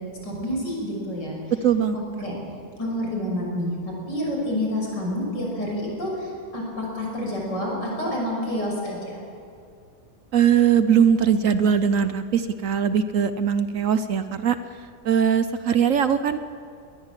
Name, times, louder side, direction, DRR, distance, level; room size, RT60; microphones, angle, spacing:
voice 1, 0.2-1.4 2.2-2.4 2.8-9.2, left 1 dB, 85° left, -1 dB, 6.7 m, -28 dB
voice 2, 1.6-2.0 10.3-14.6 15.0-16.4, right 8 dB, 60° right, 12 dB, 1.0 m, -20 dB
21.5 x 19.5 x 7.5 m, 2.4 s
omnidirectional pair, 1.8 m